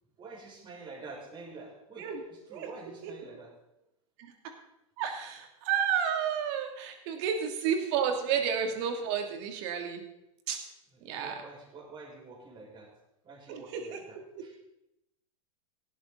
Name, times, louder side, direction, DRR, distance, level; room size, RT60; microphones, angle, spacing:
voice 1, 0.2-3.5 10.9-12.9 13.2-14.5, right 3 dB, 25° right, -1 dB, 5.7 m, -47 dB
voice 2, 3.0-3.4 4.2-4.5 5.0-10.0 10.5-10.6 11.0-11.3 13.5-14.0 14.3-14.4, right 8 dB, 50° right, 4 dB, 2.9 m, -31 dB
17.0 x 12.0 x 4.1 m, 0.85 s
hypercardioid pair, 100°, 18 cm